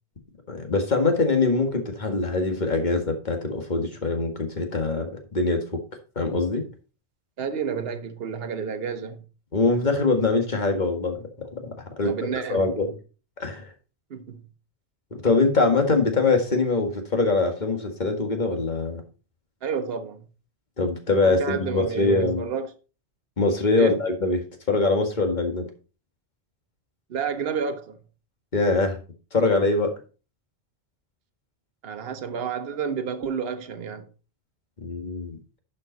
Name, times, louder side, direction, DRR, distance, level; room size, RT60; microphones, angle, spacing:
voice 1, 0.5-5.8 6.2-6.6 9.5-11.7 12.0-12.1 12.5-12.9 13.4-13.7 15.2-19.0 20.8-22.5 23.4-24.4 24.7-25.6 28.5-29.0 29.3-29.9 34.8-35.4, left 3 dB, 40° left, 2.0 m, -23 dB
voice 2, 7.4-9.2 12.0-12.7 14.1-14.4 19.6-20.3 21.2-22.7 23.8-24.0 27.1-28.0 31.8-34.1, right 6 dB, 60° right, 1.1 m, -30 dB
11.0 x 5.4 x 4.0 m
omnidirectional pair, 1.1 m